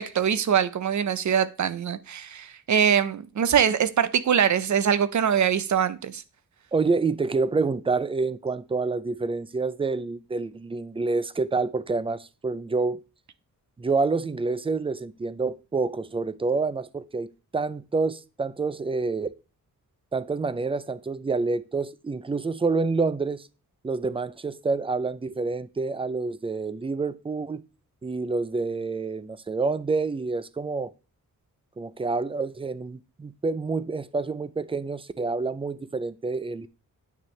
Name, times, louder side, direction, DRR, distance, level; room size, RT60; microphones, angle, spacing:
voice 1, 0.0-6.2, right 8 dB, 55° right, 0.7 m, -23 dB
voice 2, 6.7-13.0 13.8-19.3 20.1-23.5 23.8-27.6 28.0-30.9 31.8-36.7, right 4 dB, 15° right, 0.4 m, -28 dB
9.0 x 8.9 x 3.2 m
wide cardioid pair, 175°, 34 cm